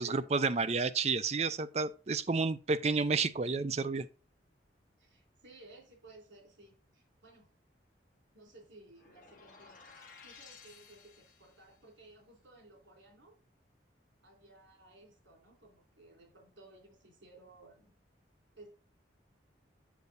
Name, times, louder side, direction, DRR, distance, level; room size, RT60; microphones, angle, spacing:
voice 1, 0.0-4.1, right 4 dB, 35° right, 0.5 m, -31 dB
voice 2, 5.0-7.5 8.3-9.9 10.2-13.4 14.2-17.9 18.6-18.7, right 2 dB, 90° right, 3.5 m, -57 dB
sound 1, 8.9-11.8, left 5 dB, 50° left, 1.5 m, -56 dB
8.2 x 6.8 x 2.6 m
head